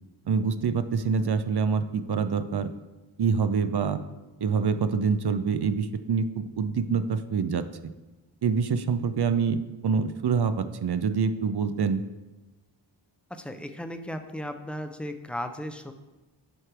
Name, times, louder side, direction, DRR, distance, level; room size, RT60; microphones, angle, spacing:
voice 1, 0.3-2.7 3.2-4.0 4.4-7.6 8.4-12.0, right 5 dB, 55° right, 10 dB, 0.6 m, -26 dB
voice 2, 13.3-15.9, equal, ahead, 7 dB, 0.6 m, -36 dB
7.9 x 3.2 x 6.0 m, 1.1 s
cardioid pair, 40°, 49 cm